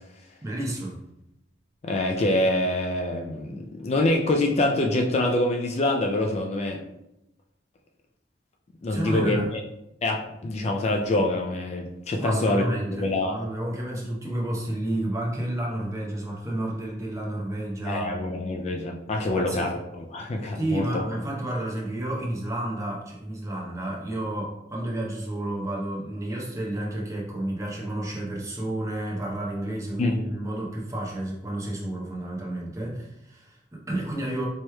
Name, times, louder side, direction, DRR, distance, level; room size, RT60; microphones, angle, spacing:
voice 1, 0.4-1.0 8.9-9.5 12.2-18.2 19.3-19.7 20.5-34.5, right 1 dB, 20° right, -3 dB, 0.8 m, -31 dB
voice 2, 1.8-6.8 8.8-9.6 10.0-12.6 12.9-13.4 17.9-21.0 30.0-30.2, left 1 dB, 35° left, 2 dB, 0.3 m, -25 dB
4.5 x 3.1 x 2.2 m, 0.86 s
head